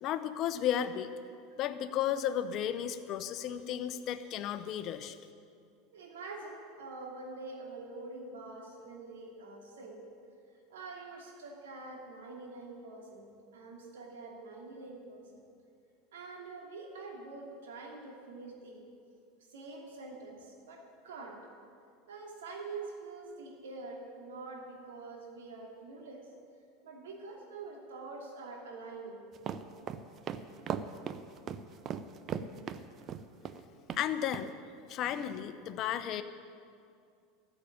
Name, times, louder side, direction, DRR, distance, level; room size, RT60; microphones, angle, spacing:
voice 1, 0.0-1.1 1.6-5.2 33.9-34.5 34.9-36.2, left 10 dB, 50° left, 11 dB, 0.8 m, -33 dB
voice 2, 5.9-10.0 10.7-15.3 16.1-18.8 19.5-21.4 22.1-26.3 26.8-29.2 33.0-33.1, right 3 dB, 80° right, -1 dB, 2.8 m, -45 dB
sound 1, 29.4-33.6 33.9-34.0 34.3-34.5, right 8 dB, 40° right, 0.7 m, -37 dB
13.5 x 7.0 x 9.2 m, 2.4 s
hypercardioid pair, 85°, 0 cm